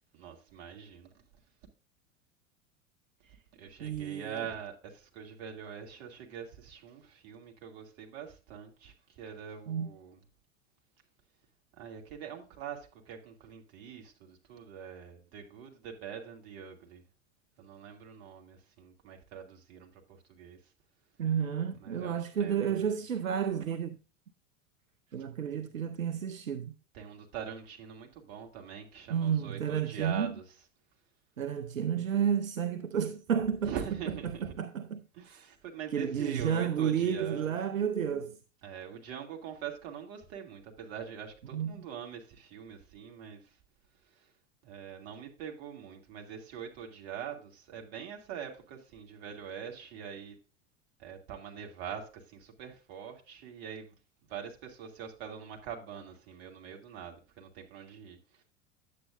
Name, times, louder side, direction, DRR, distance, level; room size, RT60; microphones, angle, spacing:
voice 1, 0.1-1.1 3.6-10.2 11.8-17.0 17.6-20.6 21.8-22.9 26.9-30.4 33.6-34.5 35.1-37.6 38.6-43.6 44.0-44.3 44.6-50.4 51.0-53.9 54.3-58.4, right 8 dB, 50° right, 2.5 m, -43 dB
voice 2, 3.8-4.3 9.7-9.9 21.2-24.0 25.1-26.7 29.1-30.3 31.4-33.7 34.2-35.0 35.9-38.4 41.5-41.8, right 8 dB, 85° right, 0.7 m, -31 dB
10.0 x 8.4 x 2.5 m
figure-of-eight pair, 85°, 39 cm